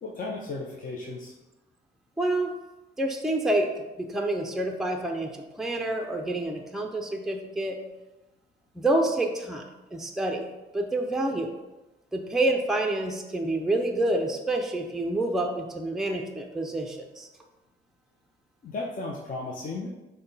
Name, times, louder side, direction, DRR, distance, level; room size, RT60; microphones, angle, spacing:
voice 1, 0.0-1.3 18.6-19.9, left 3 dB, 45° left, -1 dB, 0.6 m, -35 dB
voice 2, 2.2-2.5 3.0-7.8 8.7-9.6 9.9-11.5 12.1-17.3, right 2 dB, ahead, 2 dB, 0.5 m, -28 dB
5.7 x 2.2 x 4.0 m, 1.0 s
cardioid pair, 90°, 20 cm